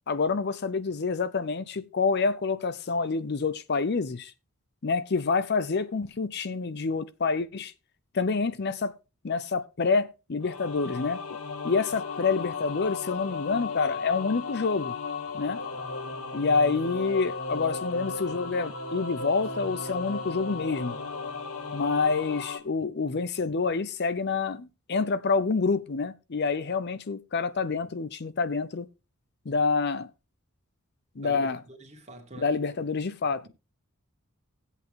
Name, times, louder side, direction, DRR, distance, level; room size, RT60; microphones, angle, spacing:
voice 1, 0.1-4.3 4.8-7.7 8.1-8.9 9.2-11.4 11.6-14.9 15.3-15.6 16.3-21.0 21.7-28.9 29.5-30.1 31.2-31.6 32.4-33.5, left 4 dB, 50° left, 0.6 m, -27 dB
sound 1, 10.4-22.6, left 4 dB, 90° left, 2.0 m, -35 dB
voice 2, 31.2-32.5 33.4-33.5, right 1 dB, 30° right, 2.1 m, -44 dB
15.5 x 8.2 x 3.3 m
head